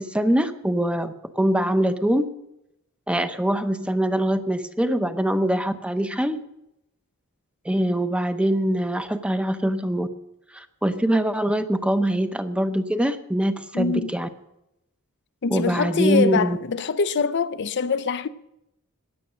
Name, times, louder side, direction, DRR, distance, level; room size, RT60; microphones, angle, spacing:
voice 1, 0.0-2.3 3.1-6.4 7.6-10.1 10.5-14.3 15.5-16.6, right 1 dB, 5° right, 0.8 m, -23 dB
voice 2, 13.7-14.1 15.4-18.3, left 5 dB, 50° left, 0.5 m, -24 dB
16.0 x 10.0 x 6.3 m
head